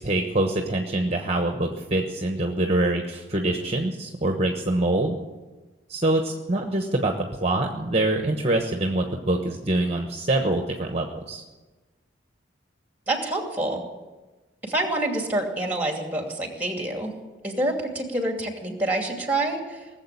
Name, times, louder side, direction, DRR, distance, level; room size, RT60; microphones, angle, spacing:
voice 1, 0.0-5.2 5.9-11.4, right 2 dB, 35° right, 3 dB, 1.2 m, -25 dB
voice 2, 13.1-13.8 14.6-17.1 17.4-19.9, right 1 dB, 10° right, 2 dB, 2.5 m, -27 dB
19.0 x 7.7 x 9.8 m, 1.2 s
head